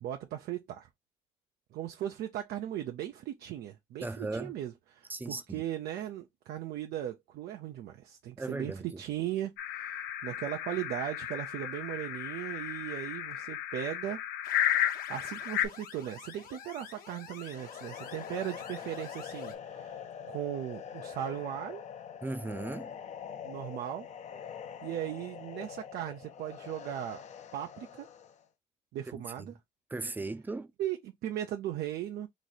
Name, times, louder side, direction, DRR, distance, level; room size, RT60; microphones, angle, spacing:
voice 1, 0.0-0.9 1.7-14.2 15.1-21.8 23.4-24.1 24.8-27.2 27.5-28.1 28.9-29.5 30.8-32.3, right 12 dB, 70° right, 0.5 m, -38 dB
voice 2, 4.0-4.5 5.1-5.6 8.4-9.0 22.2-22.9 29.1-29.5 29.9-30.7, right 2 dB, 10° right, 0.5 m, -37 dB
sound 1, 9.6-15.7, left 11 dB, 85° left, 0.5 m, -33 dB
sound 2, 14.4-19.6, left 7 dB, 60° left, 1.0 m, -49 dB
sound 3, 17.3-28.4, left 8 dB, 45° left, 0.6 m, -44 dB
3.1 x 2.6 x 4.0 m
cardioid pair, 110°, 17 cm